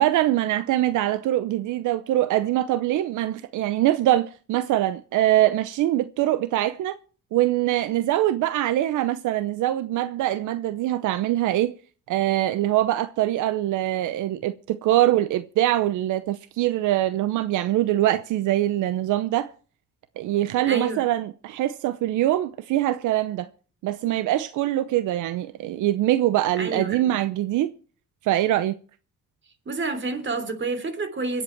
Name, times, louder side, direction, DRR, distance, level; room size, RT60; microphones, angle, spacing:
voice 1, 0.0-6.9 7.3-11.7 12.1-19.5 20.2-23.5 23.8-27.7 28.2-28.7, right 14 dB, 85° right, 0.7 m, -23 dB
voice 2, 20.7-21.0 26.6-27.1 29.6-31.4, right 3 dB, 40° right, 3.3 m, -29 dB
24.0 x 8.2 x 4.5 m
cardioid pair, 90°, 30 cm